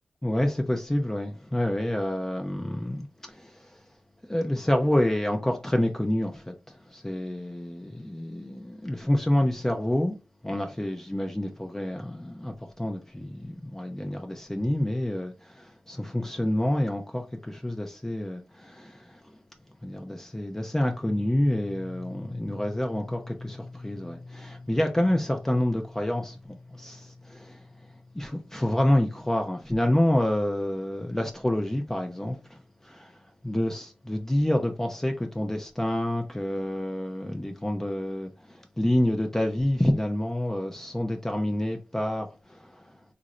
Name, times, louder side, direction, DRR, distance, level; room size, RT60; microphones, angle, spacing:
voice 1, 0.2-3.6 4.3-10.1 10.4-19.2 19.8-27.6 28.2-33.1 33.4-42.7, left 1 dB, 15° left, 0.4 m, -28 dB
sound 1, 20.9-31.5, left 3 dB, 45° left, 0.8 m, -46 dB
3.1 x 2.5 x 2.9 m
cardioid pair, 60°, 3 cm